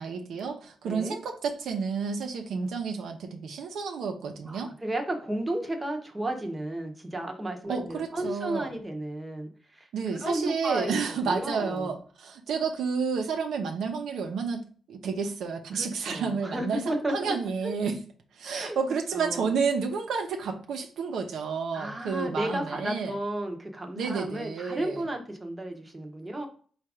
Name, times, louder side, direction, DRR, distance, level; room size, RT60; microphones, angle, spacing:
voice 1, 0.0-4.7 7.7-8.7 9.9-14.6 14.9-17.9 18.3-23.1 24.0-25.1, right 5 dB, 85° right, 4 dB, 0.7 m, -30 dB
voice 2, 0.8-1.2 2.5-2.7 4.5-9.9 10.2-11.9 15.7-17.3 17.6-17.7 18.4-18.8 19.1-19.5 21.7-26.5, right 1 dB, 15° right, 2 dB, 0.8 m, -33 dB
4.4 x 2.4 x 4.8 m, 0.43 s
cardioid pair, 125°, 0 cm